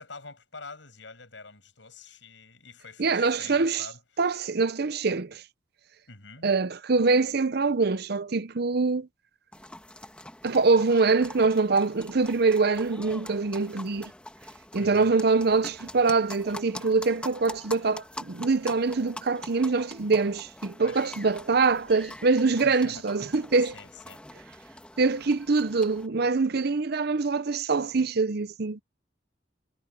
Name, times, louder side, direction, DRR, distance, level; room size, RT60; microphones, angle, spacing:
voice 1, 0.0-4.4 6.1-6.5 14.8-15.1 20.8-21.1 22.5-23.0 23.6-24.2, left 4 dB, 75° left, 6.6 m, -46 dB
voice 2, 3.0-3.9 4.2-5.4 6.4-9.1 10.4-14.1 14.7-23.7 25.0-28.8, right 4 dB, 60° right, 0.7 m, -24 dB
sound 1, 9.5-26.1, left 1 dB, 5° left, 1.6 m, -44 dB
head